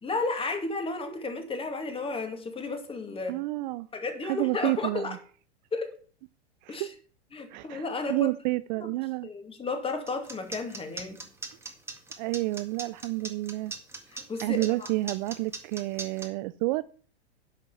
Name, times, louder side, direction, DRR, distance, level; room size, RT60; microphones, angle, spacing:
voice 1, 0.0-3.4 3.9-5.2 5.7-5.9 6.7-6.9 7.3-8.2 8.8-8.9 9.2-11.2 14.1-14.9, left 3 dB, 15° left, 6 dB, 2.3 m, -33 dB
voice 2, 3.3-3.9 4.2-5.2 6.6-6.9 7.5-9.3 12.2-13.7 14.4-16.8, right 20 dB, 45° right, 16 dB, 0.4 m, -30 dB
sound 1, 10.1-16.3, right 3 dB, 5° right, 1.9 m, -39 dB
11.0 x 5.3 x 6.9 m, 0.43 s
hypercardioid pair, 110°, 33 cm